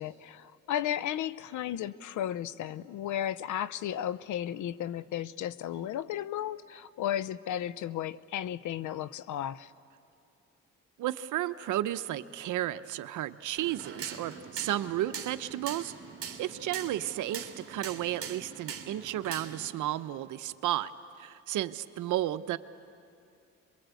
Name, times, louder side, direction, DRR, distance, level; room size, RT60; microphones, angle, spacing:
voice 1, 0.0-9.7, left 11 dB, 80° left, 17 dB, 0.7 m, -34 dB
voice 2, 11.0-15.9 16.4-20.9 21.2-22.6, right 13 dB, 80° right, 12 dB, 0.8 m, -33 dB
sound 1, 13.6-19.7, right 7 dB, 50° right, 2.3 m, -42 dB
27.0 x 22.5 x 8.3 m, 2.5 s
cardioid pair, 90°, 30 cm